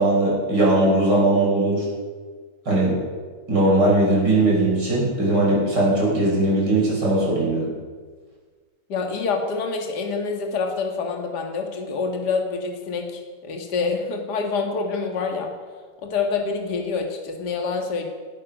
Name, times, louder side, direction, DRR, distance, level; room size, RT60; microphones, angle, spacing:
voice 1, 0.0-1.9 2.7-3.0 3.5-7.7, right 2 dB, 30° right, -4 dB, 5.9 m, -19 dB
voice 2, 8.9-15.5 16.0-18.1, left 4 dB, 35° left, 2 dB, 2.0 m, -26 dB
18.5 x 12.5 x 5.4 m, 1.5 s
omnidirectional pair, 3.9 m